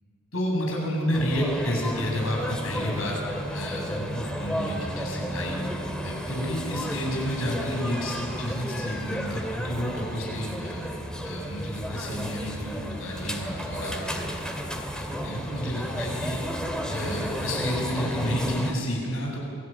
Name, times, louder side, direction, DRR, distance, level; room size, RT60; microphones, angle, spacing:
voice 1, 0.3-3.2 3.5-5.6 6.0-10.9 11.2-14.4 14.9-16.4 16.9-19.4, equal, 80° left, -1 dB, 8.0 m, -30 dB
sound 1, 1.1-18.7, equal, 5° left, 2.3 m, -32 dB
27.5 x 18.5 x 9.2 m, 2.6 s
head